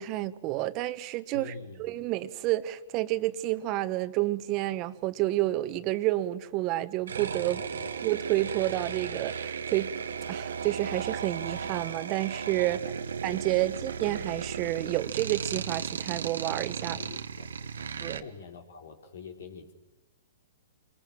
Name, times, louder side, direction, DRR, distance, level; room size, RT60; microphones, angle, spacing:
voice 1, 0.0-1.5 1.8-7.6 8.0-9.9 10.3-12.8 13.2-17.0 18.0-18.2, right 16 dB, 40° right, 1.3 m, -29 dB
voice 2, 1.3-2.0 7.6-8.0 12.7-13.1 13.7-13.9 16.8-17.8 18.1-19.7, left 5 dB, 75° left, 3.7 m, -46 dB
sound 1, 7.1-18.2, right 6 dB, 80° right, 1.3 m, -35 dB
27.0 x 21.0 x 7.4 m
hypercardioid pair, 125°, 0 cm